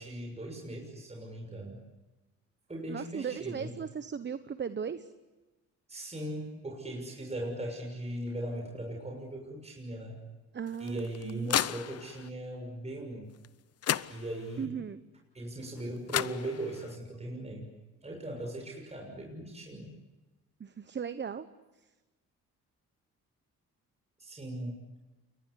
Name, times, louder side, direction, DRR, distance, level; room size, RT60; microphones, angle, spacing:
voice 1, 0.0-1.8 2.7-3.7 5.9-10.2 10.8-13.3 14.1-14.7 15.3-17.7 18.0-19.9 24.2-24.8, right 1 dB, 20° right, 1 dB, 6.6 m, -39 dB
voice 2, 2.9-5.1 10.5-11.5 14.6-15.0 20.6-21.5, right 7 dB, 35° right, 12 dB, 1.1 m, -37 dB
sound 1, 10.7-12.3 13.4-13.5 13.8-14.7 15.8-15.9 16.1-17.0, left 10 dB, 55° left, 0.8 m, -33 dB
29.0 x 23.0 x 8.4 m, 1.1 s
cardioid pair, 90°, 30 cm